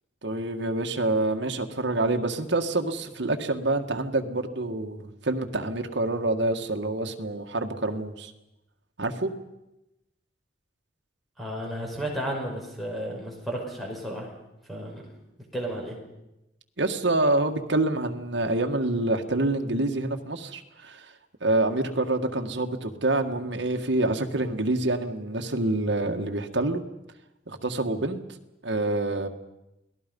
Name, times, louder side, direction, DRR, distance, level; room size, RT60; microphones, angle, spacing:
voice 1, 0.2-8.3 9.0-9.3 16.8-21.1 21.4-26.8 27.5-28.2 28.6-29.3, right 2 dB, 70° right, 5 dB, 1.7 m, -27 dB
voice 2, 11.4-14.3 14.7-15.0 15.5-16.0, right 1 dB, ahead, -1 dB, 5.5 m, -33 dB
29.0 x 19.0 x 5.4 m, 0.93 s
head